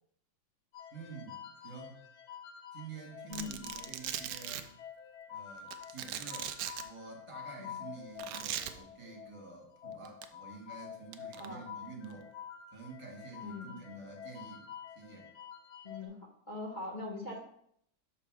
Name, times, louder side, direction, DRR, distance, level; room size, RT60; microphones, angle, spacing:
sound 1, 0.7-16.1, left 8 dB, 90° left, 1.6 m, -49 dB
voice 1, 0.9-2.0 2.7-4.7 5.3-6.5 6.8-12.3 12.7-14.7 14.9-15.3, right 4 dB, 15° right, -2 dB, 1.8 m, -49 dB
Domestic sounds home sounds, 3.3-4.6 5.7-6.8 8.2-8.7 10.0-10.2 11.1-11.5, right 11 dB, 75° right, 0.9 m, -39 dB
voice 2, 13.4-13.7 15.8-17.4, left 3 dB, 35° left, -1 dB, 0.8 m, -42 dB
5.8 x 4.1 x 6.1 m, 0.67 s
omnidirectional pair, 2.2 m